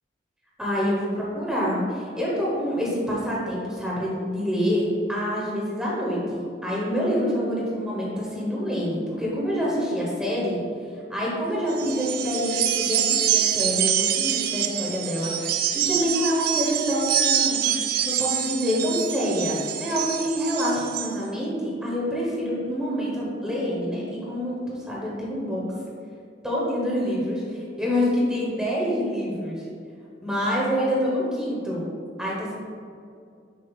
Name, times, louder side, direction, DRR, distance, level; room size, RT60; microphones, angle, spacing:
voice 1, 0.6-10.6 11.1-17.7 18.0-25.6 26.4-29.7 30.2-31.8 32.2-32.5, equal, 5° right, -6 dB, 1.1 m, -26 dB
sound 1, 11.7-21.1, right 10 dB, 55° right, 0.4 m, -25 dB
6.7 x 2.7 x 5.7 m, 2.4 s
head